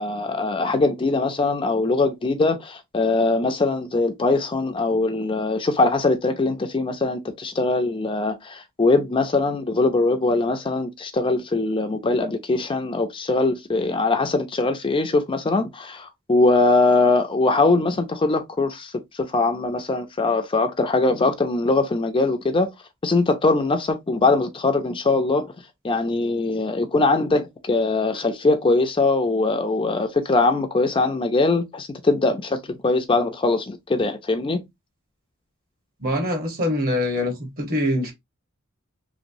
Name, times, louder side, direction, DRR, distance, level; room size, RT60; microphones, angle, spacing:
voice 1, 0.0-22.7 23.0-25.5 25.8-34.6, left 3 dB, 25° left, 0.4 m, -21 dB
voice 2, 36.0-38.1, left 1 dB, 45° right, 1.1 m, -24 dB
3.0 x 2.9 x 2.6 m
head